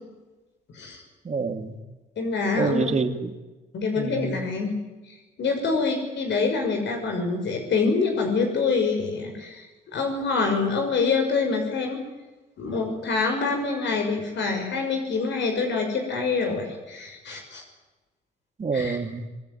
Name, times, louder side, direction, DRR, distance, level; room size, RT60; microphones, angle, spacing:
voice 1, 1.2-1.8 2.6-3.4 4.0-4.4 18.6-19.3, right 4 dB, 35° right, 7 dB, 2.6 m, -27 dB
voice 2, 2.2-3.0 3.7-4.7 5.1-9.7 9.9-12.0 12.6-17.6 18.7-19.0, left 4 dB, 65° left, 3 dB, 6.2 m, -26 dB
25.5 x 20.5 x 9.5 m, 1.1 s
cardioid pair, 90°, 20 cm